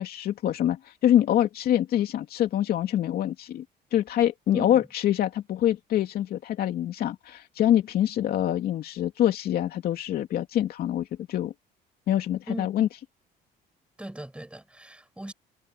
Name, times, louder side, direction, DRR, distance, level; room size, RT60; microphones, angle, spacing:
voice 1, 0.0-3.6 3.9-11.5 12.1-12.9, left 11 dB, 65° left, 2.8 m, -25 dB
voice 2, 4.5-4.9 12.5-12.9 14.0-15.3, right 1 dB, 5° right, 7.5 m, -39 dB
cardioid pair, 110°, 17 cm